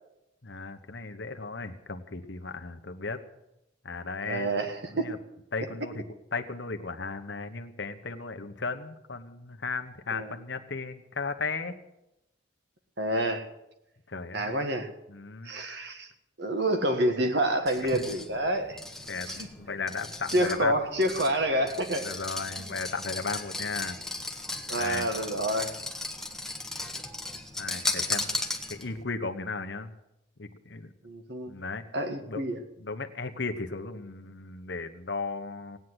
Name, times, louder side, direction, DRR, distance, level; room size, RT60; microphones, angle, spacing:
voice 1, 0.4-3.2 3.8-4.5 4.9-5.2 5.5-6.0 6.3-11.7 14.1-14.7 15.1-15.5 19.1-20.7 22.0-24.0 24.8-25.1 27.6-28.4 28.7-29.9 30.4-30.9 31.5-31.8 32.3-32.4 32.8-35.8, left 4 dB, 60° left, 7 dB, 1.1 m, -35 dB
voice 2, 4.2-5.1 10.1-10.3 13.0-13.5 14.3-14.9 15.4-16.1 16.4-18.8 19.3-19.5 20.3-22.1 22.6-22.7 24.7-25.8 31.0-31.5 31.9-32.6, right 1 dB, 55° right, 7 dB, 1.5 m, -28 dB
sound 1, 17.7-29.0, left 2 dB, ahead, 1.1 m, -36 dB
17.0 x 9.5 x 7.9 m, 0.88 s
head